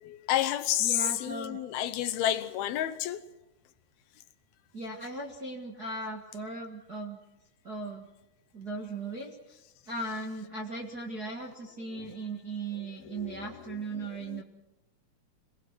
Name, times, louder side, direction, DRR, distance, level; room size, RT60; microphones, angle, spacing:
voice 1, 0.0-3.2 11.9-12.1 13.0-14.4, left 12 dB, 75° left, 2.6 m, -31 dB
voice 2, 0.8-1.6 4.7-7.2 7.6-8.1 8.5-9.6 9.9-14.4, right 2 dB, 40° right, 1.3 m, -38 dB
26.5 x 19.0 x 6.1 m
omnidirectional pair, 4.7 m